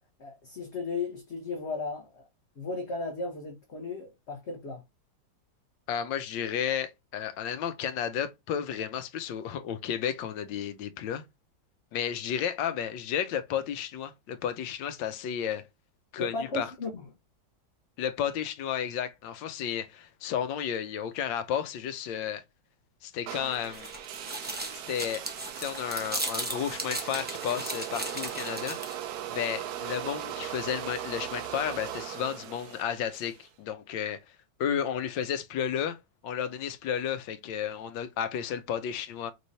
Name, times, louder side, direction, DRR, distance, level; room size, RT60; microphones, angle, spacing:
voice 1, 0.2-2.2 2.6-4.8 16.2-17.0, left 3 dB, 45° left, 1.1 m, -35 dB
voice 2, 5.9-11.2 11.9-15.7 16.1-16.7 18.0-22.4 23.0-23.9 24.7-25.2 25.6-29.0 29.3-36.0 36.2-39.3, left 9 dB, 90° left, 1.4 m, -32 dB
sound 1, 23.3-33.4, right 11 dB, 70° right, 1.1 m, -39 dB
sound 2, 23.4-29.1, right 1 dB, 15° right, 0.3 m, -37 dB
5.2 x 3.2 x 2.7 m
omnidirectional pair, 1.9 m